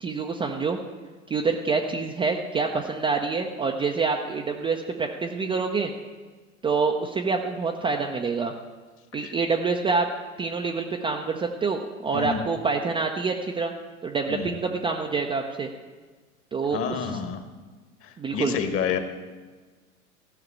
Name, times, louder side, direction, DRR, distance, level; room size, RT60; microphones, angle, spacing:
voice 1, 0.0-0.8 1.3-5.9 6.6-8.5 9.1-10.1 10.4-13.7 14.0-15.7 16.5-17.1 18.2-18.6, right 4 dB, 10° right, 1 dB, 0.6 m, -26 dB
voice 2, 12.1-12.4 14.3-14.5 16.7-17.4 18.0-19.0, left 7 dB, 30° left, 8 dB, 1.4 m, -29 dB
14.0 x 5.8 x 8.5 m, 1.4 s
figure-of-eight pair, 95°, 42 cm